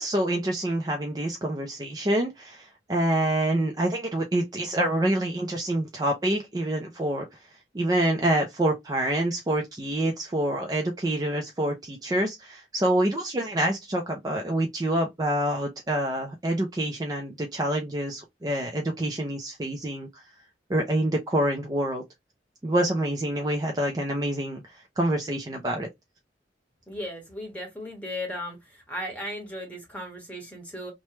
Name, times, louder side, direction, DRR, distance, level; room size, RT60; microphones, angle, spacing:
voice 1, 0.0-7.3 7.7-20.1 20.7-22.0 22.6-25.9, right 1 dB, 20° right, 0.5 m, -27 dB
voice 2, 26.9-30.9, left 1 dB, 10° left, 1.2 m, -36 dB
3.1 x 2.2 x 2.9 m
head